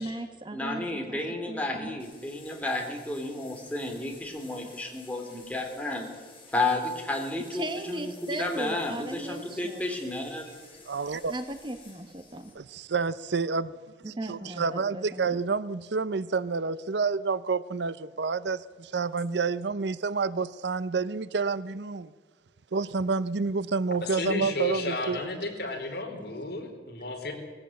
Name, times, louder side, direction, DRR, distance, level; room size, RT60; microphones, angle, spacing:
voice 1, 0.0-1.2 1.5-1.9 7.5-9.8 11.3-12.5 14.0-15.4, right 1 dB, 25° right, 1.2 m, -37 dB
voice 2, 0.5-6.0 6.5-10.5, left 2 dB, 10° left, 3.4 m, -32 dB
sound 1, 2.0-12.5, left 4 dB, 30° left, 7.3 m, -53 dB
voice 3, 10.9-11.3 12.5-13.7 14.1-22.1 22.7-25.2, right 4 dB, 75° right, 0.6 m, -29 dB
voice 4, 24.0-27.3, left 2 dB, 60° left, 4.1 m, -33 dB
20.0 x 16.0 x 8.7 m
head